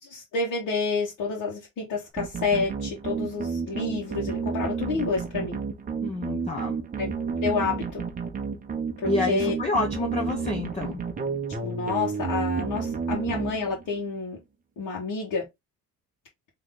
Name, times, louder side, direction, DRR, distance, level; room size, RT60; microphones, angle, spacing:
voice 1, 0.0-5.6 7.0-8.0 9.0-9.5 11.6-14.4 14.8-15.4, left 4 dB, 65° left, 1.5 m, -29 dB
sound 1, 2.2-14.0, right 5 dB, 25° right, 0.8 m, -31 dB
voice 2, 6.0-6.8 9.0-11.0, left 2 dB, 20° left, 0.9 m, -28 dB
3.8 x 3.1 x 3.8 m
cardioid pair, 165°, 34 cm